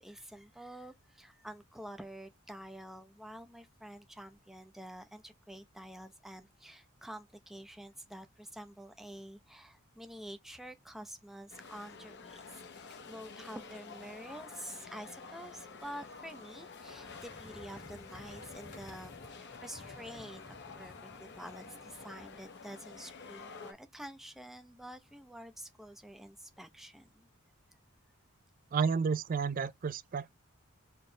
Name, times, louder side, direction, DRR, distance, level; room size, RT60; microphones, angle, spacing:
voice 1, 0.0-27.3, right 1 dB, ahead, 0.6 m, -48 dB
sound 1, 11.5-23.7, left 4 dB, 55° left, 0.9 m, -49 dB
sound 2, 16.8-22.4, left 2 dB, 85° left, 2.3 m, -55 dB
voice 2, 28.7-30.4, right 5 dB, 40° right, 0.4 m, -31 dB
4.4 x 3.1 x 3.2 m
head